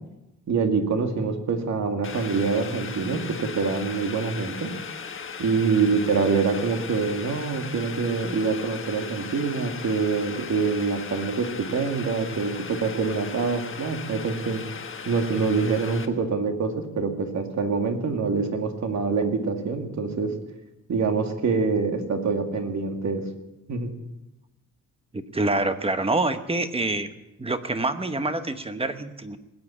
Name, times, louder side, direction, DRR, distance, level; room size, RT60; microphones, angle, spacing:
voice 1, 0.5-4.7 5.4-14.6 15.1-20.3 20.9-23.2 23.7-23.9, right 4 dB, 60° right, 5 dB, 2.2 m, -25 dB
Boiling, 2.0-16.1, left 6 dB, 40° left, 1.4 m, -37 dB
voice 2, 25.1-27.1 27.4-29.4, right 2 dB, 20° right, 9 dB, 1.0 m, -26 dB
19.5 x 8.6 x 8.5 m, 0.99 s
wide cardioid pair, 125°, 32 cm